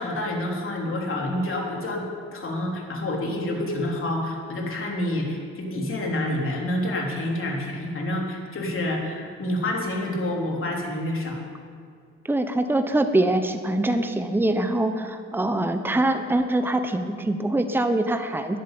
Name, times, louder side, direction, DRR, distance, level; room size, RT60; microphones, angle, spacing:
voice 1, 0.0-2.0 2.3-11.4, left 1 dB, 45° left, -1 dB, 3.6 m, -28 dB
voice 2, 12.2-18.6, right 1 dB, 5° right, 7 dB, 1.0 m, -24 dB
11.0 x 11.0 x 9.1 m, 2.3 s
cardioid pair, 90°, 30 cm